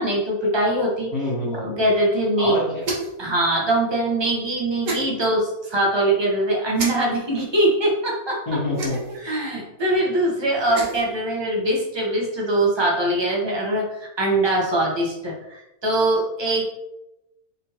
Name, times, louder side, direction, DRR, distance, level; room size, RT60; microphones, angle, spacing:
voice 1, 0.0-1.1 1.6-2.6 3.2-8.4 9.2-16.6, right 1 dB, 25° right, -2 dB, 0.7 m, -22 dB
voice 2, 1.1-1.8 2.4-2.9 8.5-9.0, left 2 dB, 80° left, -11 dB, 1.9 m, -26 dB
sound 1, 2.8-3.2 4.8-5.0 6.7-6.9 8.7-9.2 10.5-11.1, right 2 dB, 60° right, 1.2 m, -28 dB
3.8 x 3.6 x 2.8 m, 0.91 s
omnidirectional pair, 1.6 m